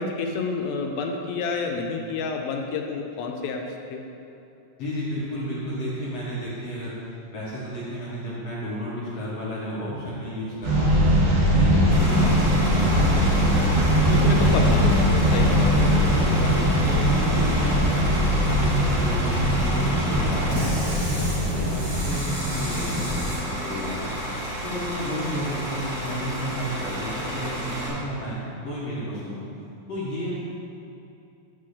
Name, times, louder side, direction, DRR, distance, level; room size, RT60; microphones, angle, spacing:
voice 1, 0.0-3.6 3.9-4.0 12.1-12.5 14.1-15.6, left 4 dB, 85° left, 2 dB, 2.5 m, -29 dB
voice 2, 4.8-7.0 7.3-11.1 11.5-14.7 15.4-17.8 18.1-24.1 24.6-29.4 29.9-30.4, equal, 60° left, -8 dB, 1.9 m, -32 dB
sound 1, 10.6-23.4, equal, 85° right, 3.8 m, -21 dB
Bus / Idling, 11.9-27.9, equal, 50° right, 1.1 m, -31 dB
9.8 x 3.8 x 6.5 m, 2.9 s
omnidirectional pair, 4.3 m